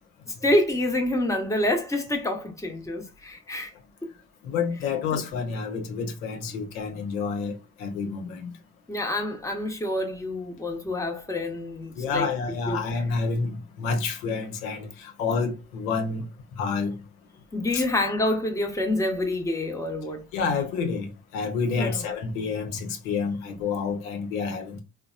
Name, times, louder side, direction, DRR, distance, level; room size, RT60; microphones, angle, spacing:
voice 1, 0.3-3.7 5.1-5.2 8.9-12.3 12.7-12.8 17.5-20.2 21.8-22.1, left 1 dB, 5° left, 1.0 m, -27 dB
voice 2, 4.4-8.5 12.0-16.2 16.5-17.0 17.7-17.8 20.3-21.1 21.3-24.8, left 5 dB, 75° left, 1.0 m, -29 dB
3.9 x 2.3 x 2.3 m
hypercardioid pair, 55°, 42 cm